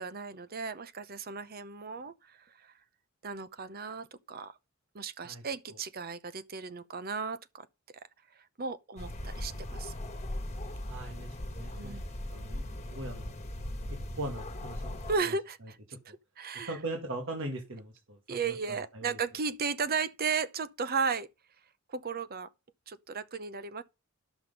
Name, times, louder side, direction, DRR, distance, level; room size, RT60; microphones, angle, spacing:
voice 1, 0.0-2.7 3.2-4.6 4.9-7.7 8.6-9.9 11.7-12.0 15.1-15.8 16.0-16.7 18.3-21.3 21.9-22.5 22.9-23.8, right 5 dB, 45° right, 0.7 m, -35 dB
sound 1, 9.0-15.2, left 1 dB, 30° left, 1.5 m, -39 dB
voice 2, 10.8-11.3 11.5-12.0 12.3-12.6 12.9-13.3 14.2-14.9 15.9-16.0 16.6-19.2, right 2 dB, 60° right, 1.6 m, -40 dB
11.5 x 6.1 x 5.2 m
head